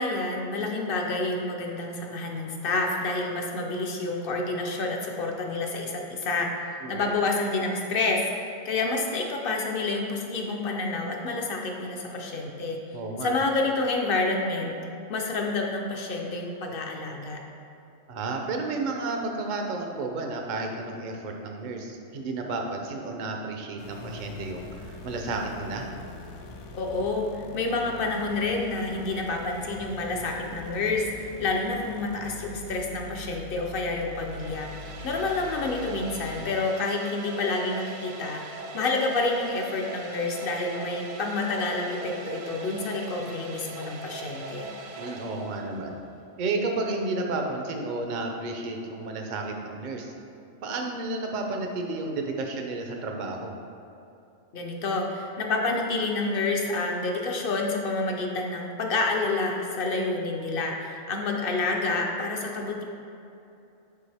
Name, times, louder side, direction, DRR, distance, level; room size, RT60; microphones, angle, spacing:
voice 1, 0.0-6.5 6.9-12.8 13.2-14.7 15.1-17.4 26.7-38.4 38.7-44.7 54.5-62.8, left 3 dB, 55° left, 1 dB, 0.8 m, -28 dB
voice 2, 12.9-13.3 18.1-25.9 45.0-46.0 46.4-50.1 50.6-53.5, right 3 dB, 50° right, 2 dB, 0.6 m, -32 dB
sound 1, 23.8-36.4, left 3 dB, 85° left, 1.0 m, -43 dB
sound 2, 34.1-46.0, right 2 dB, 80° right, 1.0 m, -41 dB
6.9 x 4.7 x 3.4 m, 2.7 s
omnidirectional pair, 1.3 m